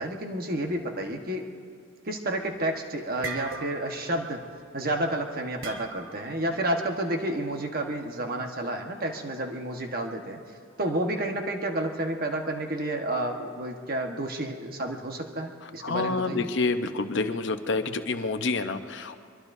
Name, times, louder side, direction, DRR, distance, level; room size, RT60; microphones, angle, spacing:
voice 1, 0.0-1.5 2.0-4.4 4.7-10.4 10.8-16.5, right 1 dB, 45° right, 3 dB, 1.4 m, -30 dB
sound 1, 2.3-2.7 3.0-4.1 4.3-4.6 5.6-6.3, right 4 dB, 70° right, 1.3 m, -38 dB
voice 2, 15.8-19.2, left 3 dB, 60° left, 8 dB, 0.8 m, -28 dB
24.0 x 22.5 x 2.7 m, 2.4 s
head